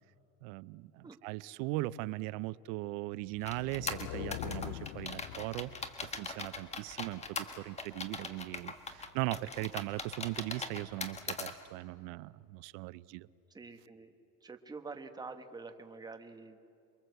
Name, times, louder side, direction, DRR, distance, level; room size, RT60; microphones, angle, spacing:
voice 1, 0.4-5.7 6.0-13.3, right 19 dB, 80° right, 19 dB, 0.7 m, -39 dB
sound 1, 3.3-6.2, left 19 dB, 85° left, 0.6 m, -43 dB
sound 2, 3.4-11.5, left 4 dB, 15° left, 1.4 m, -41 dB
voice 2, 13.5-14.1 14.4-16.6, right 4 dB, 10° right, 6 dB, 1.3 m, -47 dB
28.0 x 22.5 x 8.0 m, 2.8 s
cardioid pair, 160°, 39 cm